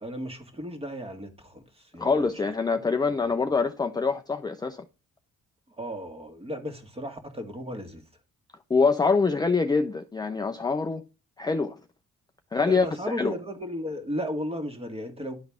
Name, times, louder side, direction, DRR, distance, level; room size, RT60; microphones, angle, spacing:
voice 1, 0.0-2.3 3.2-3.3 5.8-8.0 12.6-15.4, equal, 20° right, 1.7 m, -35 dB
voice 2, 2.0-4.8 8.7-11.0 11.4-11.8 12.5-13.4, left 4 dB, 15° left, 0.5 m, -25 dB
11.5 x 3.9 x 3.5 m
cardioid pair, 90°, 30 cm